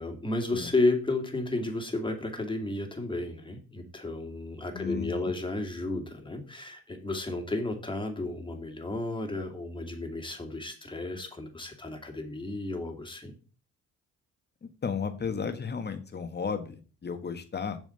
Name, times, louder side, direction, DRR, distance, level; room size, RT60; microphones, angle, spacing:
voice 1, 0.0-13.4, left 2 dB, 15° left, 4 dB, 2.3 m, -32 dB
voice 2, 4.7-5.3 14.6-17.8, left 6 dB, 35° left, 8 dB, 1.5 m, -34 dB
7.4 x 5.0 x 6.9 m, 0.37 s
cardioid pair, 90°, 30 cm